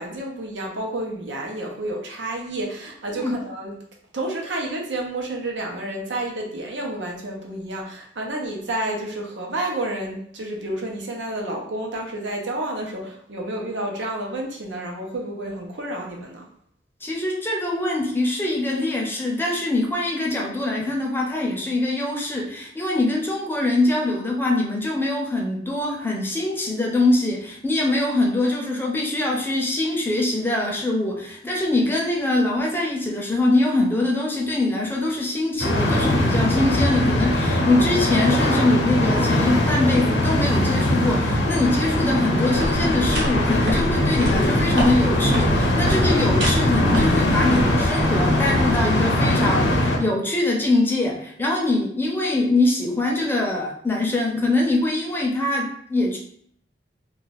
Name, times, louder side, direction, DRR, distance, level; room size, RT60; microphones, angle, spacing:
voice 1, 0.0-3.7 4.1-16.5, right 1 dB, 90° right, 0 dB, 0.8 m, -30 dB
voice 2, 17.0-56.2, left 2 dB, 10° left, -1 dB, 0.6 m, -23 dB
sound 1, 35.6-50.0, left 1 dB, 75° left, 0.7 m, -21 dB
sound 2, 42.5-48.8, equal, 70° right, 1.2 m, -29 dB
2.4 x 2.4 x 4.0 m, 0.66 s
head